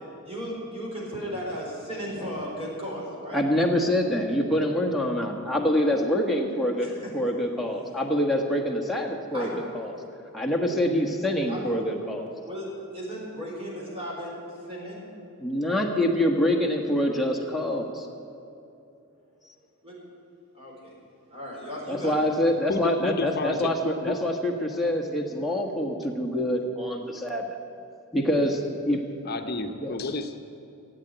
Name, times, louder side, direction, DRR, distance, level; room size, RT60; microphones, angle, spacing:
voice 1, 0.2-3.4 6.8-7.3 9.3-9.6 11.5-11.6 12.5-12.7 12.9-14.3 14.7-15.1 19.8-20.0 20.5-20.9 21.3-22.2, equal, 25° right, -4 dB, 4.2 m, -35 dB
voice 2, 3.3-6.9 7.1-9.9 10.3-12.3 15.4-18.1 21.9-27.6 28.1-29.0 29.8-29.9, left 1 dB, ahead, 1 dB, 1.4 m, -25 dB
voice 3, 22.7-24.1 29.2-30.4, left 2 dB, 45° left, 6 dB, 0.8 m, -31 dB
15.0 x 8.2 x 9.1 m, 2.8 s
head